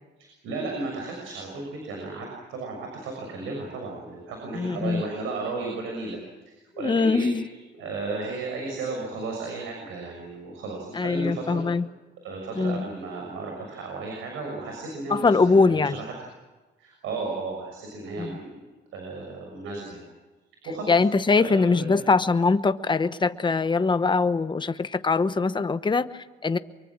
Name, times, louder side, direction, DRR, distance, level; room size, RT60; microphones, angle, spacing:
voice 1, 0.2-6.2 6.8-11.6 12.2-16.1 16.8-18.6 18.9-20.0 20.6-21.1 21.3-21.9, right 3 dB, 90° right, 1 dB, 6.6 m, -34 dB
voice 2, 4.6-5.0 6.8-7.4 11.0-11.8 12.6-12.8 15.1-16.0 18.2-18.3 20.9-26.1 26.4-26.6, left 4 dB, 25° left, 12 dB, 1.0 m, -22 dB
25.0 x 23.5 x 7.4 m, 1.2 s
cardioid pair, 90°, 20 cm